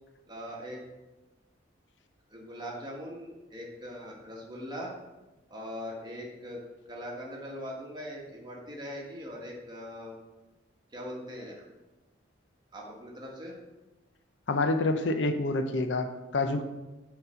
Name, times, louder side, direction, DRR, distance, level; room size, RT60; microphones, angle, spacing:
voice 1, 0.3-0.8 2.3-4.9 5.5-6.6 6.9-10.2 10.9-11.6 12.7-13.5, equal, 25° right, -3 dB, 1.4 m, -41 dB
voice 2, 14.5-16.6, left 2 dB, 75° left, 8 dB, 0.6 m, -27 dB
6.7 x 4.1 x 5.7 m, 1.1 s
head